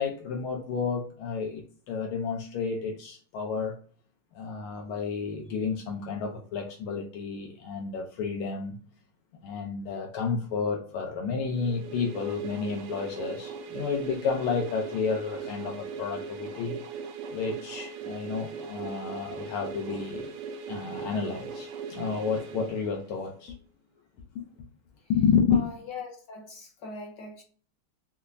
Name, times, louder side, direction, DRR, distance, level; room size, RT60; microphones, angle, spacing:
voice 1, 0.0-3.8 4.3-8.8 9.4-16.8 17.3-20.3 20.7-23.5 24.3-24.4 25.1-25.6, left 5 dB, 80° left, 1.5 m, -30 dB
sound 1, 11.5-23.4, right 5 dB, 75° right, 1.1 m, -39 dB
voice 2, 25.5-27.4, left 4 dB, 60° left, 1.6 m, -41 dB
5.4 x 2.0 x 2.5 m
omnidirectional pair, 2.3 m